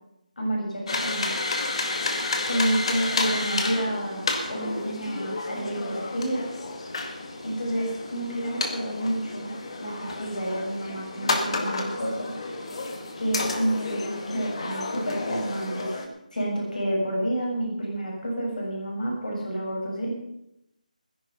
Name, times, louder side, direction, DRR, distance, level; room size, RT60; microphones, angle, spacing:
voice 1, 0.4-1.3 2.5-6.5 7.4-9.5 9.8-12.3 13.1-16.0 16.3-20.1, right 1 dB, 65° left, -2 dB, 6.8 m, -29 dB
sound 1, 0.9-16.1, left 3 dB, 40° left, 2.0 m, -31 dB
18.0 x 10.5 x 5.6 m, 0.81 s
figure-of-eight pair, 165°, 5 cm